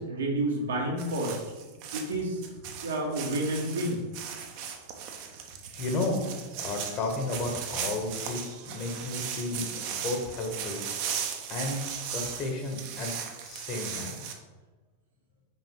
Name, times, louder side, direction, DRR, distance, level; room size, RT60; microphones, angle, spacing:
voice 1, 0.0-1.4 1.9-2.4 2.8-4.0, right 1 dB, 70° right, -1 dB, 1.3 m, -29 dB
sound 1, 1.0-14.3, right 7 dB, 45° right, 0.8 m, -37 dB
voice 2, 5.7-6.2 6.6-10.8 11.5-13.1 13.4-14.2, left 2 dB, 35° left, 3 dB, 1.2 m, -33 dB
6.0 x 4.6 x 3.7 m, 1.2 s
figure-of-eight pair, 90°, 0 cm